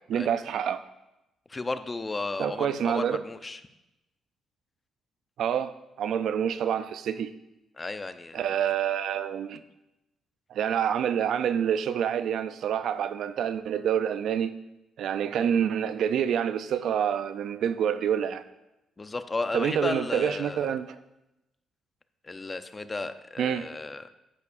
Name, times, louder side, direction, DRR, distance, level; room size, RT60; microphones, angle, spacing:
voice 1, 0.1-0.8 2.4-3.2 5.4-7.3 8.3-9.6 10.5-14.5 15.0-18.4 19.5-21.0 23.4-23.7, right 8 dB, 70° right, 0.4 m, -27 dB
voice 2, 1.5-3.6 7.8-8.4 15.3-15.5 19.0-20.7 22.3-24.0, left 3 dB, 25° left, 0.5 m, -34 dB
11.0 x 8.4 x 2.6 m
cardioid pair, 90°, 0 cm